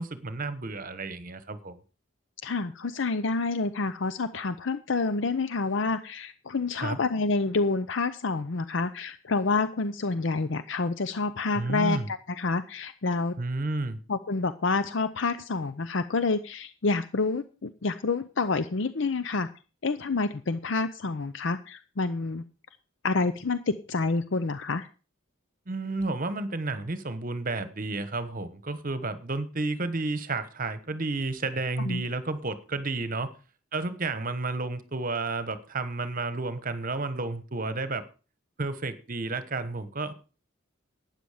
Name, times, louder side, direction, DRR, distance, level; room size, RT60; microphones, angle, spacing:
voice 1, 0.0-1.8 6.8-7.0 11.5-12.1 13.4-14.0 25.7-33.3 33.7-38.0 38.6-40.1, right 3 dB, 40° right, 1.1 m, -31 dB
voice 2, 2.4-13.3 14.1-19.5 19.8-22.4 23.0-24.9 31.9-32.0, left 3 dB, 60° left, 0.6 m, -28 dB
12.5 x 9.2 x 5.0 m
head